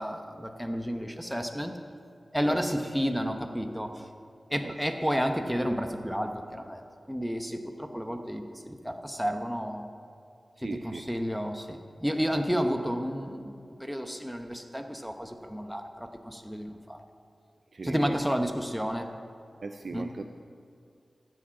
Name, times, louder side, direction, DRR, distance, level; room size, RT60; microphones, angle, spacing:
voice 1, 0.0-1.8 2.3-4.1 4.5-9.9 10.6-17.0 17.8-19.1 19.9-20.1, equal, ahead, 5 dB, 0.9 m, -31 dB
voice 2, 10.6-11.1 17.7-18.2 19.6-20.2, right 3 dB, 65° right, 5 dB, 0.5 m, -39 dB
14.0 x 7.6 x 5.9 m, 2.4 s
wide cardioid pair, 65°, 0 cm